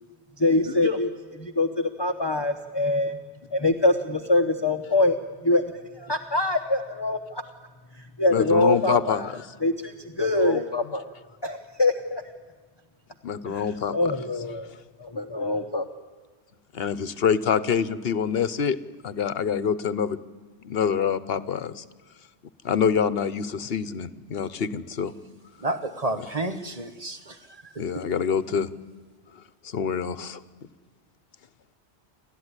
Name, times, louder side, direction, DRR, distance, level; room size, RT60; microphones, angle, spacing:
voice 1, 0.4-3.2 3.5-5.2 5.4-5.6 5.9-7.4 7.9-9.3 9.6-11.1 11.4-12.2 13.4-14.7 15.0-15.9, left 2 dB, 25° left, 0.9 m, -24 dB
voice 2, 8.3-9.3 13.2-13.9 16.7-18.8 19.0-20.2 20.6-21.8 22.6-25.1 27.8-28.7 29.6-30.4, left 7 dB, 65° left, 1.1 m, -26 dB
voice 3, 25.6-28.1, right 2 dB, 35° right, 1.3 m, -31 dB
29.5 x 12.5 x 9.8 m
omnidirectional pair, 1.1 m